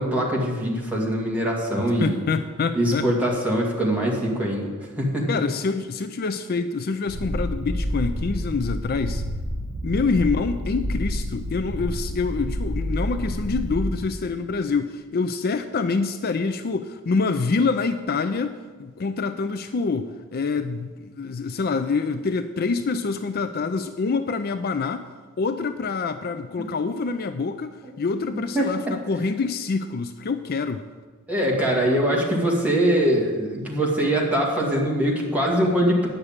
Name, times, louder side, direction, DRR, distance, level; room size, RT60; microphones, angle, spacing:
voice 1, 0.0-2.2 2.7-4.7 5.0-5.3 28.5-28.7 31.3-36.1, right 1 dB, 5° right, -3 dB, 2.2 m, -22 dB
voice 2, 1.8-3.1 5.3-9.2 9.8-25.1 25.4-30.8, left 4 dB, 45° left, 9 dB, 0.4 m, -26 dB
Purr, 7.1-14.1, equal, 60° right, 1.9 m, -29 dB
9.6 x 6.6 x 8.7 m, 1.4 s
head